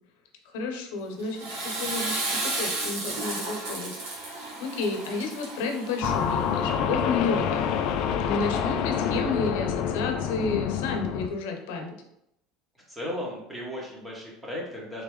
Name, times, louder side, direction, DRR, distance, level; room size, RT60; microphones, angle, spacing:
voice 1, 0.4-7.7 8.2-12.0, left 4 dB, 85° left, 4 dB, 0.8 m, -31 dB
Water / Toilet flush, 1.2-6.4, right 2 dB, 85° right, 1.5 m, -33 dB
sound 1, 6.0-11.3, left 8 dB, 60° left, 0.4 m, -27 dB
voice 2, 12.9-15.0, left 1 dB, 10° right, -4 dB, 1.4 m, -35 dB
3.7 x 3.5 x 3.2 m, 0.79 s
cardioid pair, 140°, 0 cm